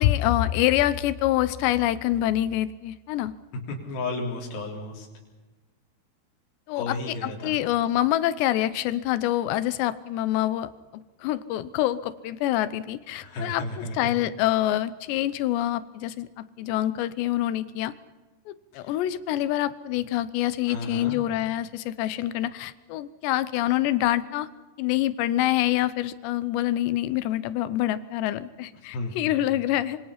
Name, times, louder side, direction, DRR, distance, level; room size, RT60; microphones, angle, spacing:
voice 1, 0.0-3.3 6.7-7.0 7.2-10.7 11.2-17.9 18.5-24.5 24.8-30.0, left 13 dB, 90° left, 14 dB, 3.1 m, -26 dB
voice 2, 3.7-5.1 6.7-7.6 13.2-14.1 18.7-19.0 20.7-21.2 28.9-29.6, left 2 dB, 60° left, -2 dB, 5.3 m, -33 dB
26.0 x 24.5 x 5.8 m, 1.2 s
omnidirectional pair, 4.9 m